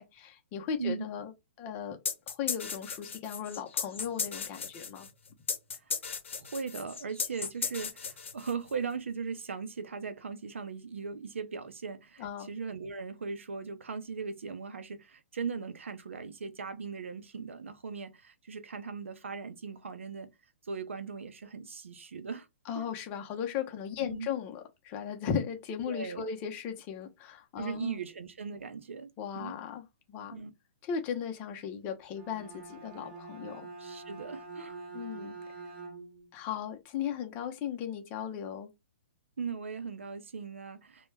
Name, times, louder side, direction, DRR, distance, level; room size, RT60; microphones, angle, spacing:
voice 1, 0.0-1.3 1.6-2.0 2.3-5.1 12.2-12.5 22.7-28.0 29.2-29.8 30.1-30.4 30.8-33.7 34.9-35.4 36.3-38.7, left 8 dB, 30° left, 0.6 m, -37 dB
sound 1, 2.0-8.7, left 5 dB, 80° left, 0.6 m, -36 dB
voice 2, 6.4-20.3 20.6-22.5 22.7-22.9 24.0-24.3 25.9-26.3 27.6-29.5 30.3-30.5 33.8-34.8 39.4-41.1, right 5 dB, 85° right, 0.5 m, -39 dB
Bowed string instrument, 32.0-36.3, right 3 dB, 20° right, 1.0 m, -45 dB
2.2 x 2.1 x 3.2 m
hypercardioid pair, 135°, 7 cm